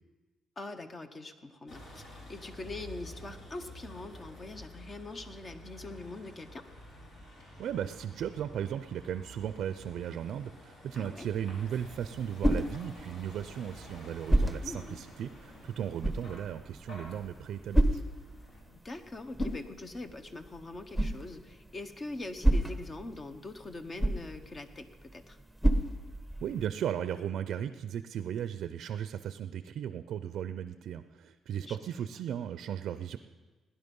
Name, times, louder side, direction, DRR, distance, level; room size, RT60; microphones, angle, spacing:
voice 1, 0.6-6.6 10.9-11.3 14.6-15.0 18.7-25.4 31.7-32.1, left 2 dB, 35° left, 8 dB, 1.1 m, -43 dB
Vehicle, 1.7-18.6, equal, 65° left, 4.1 m, -50 dB
voice 2, 7.6-18.0 26.4-33.2, right 9 dB, 75° right, 11 dB, 0.5 m, -36 dB
sound 1, 11.8-26.7, right 1 dB, 5° left, 1.1 m, -33 dB
16.5 x 10.5 x 5.4 m, 1.3 s
cardioid pair, 90°, 0 cm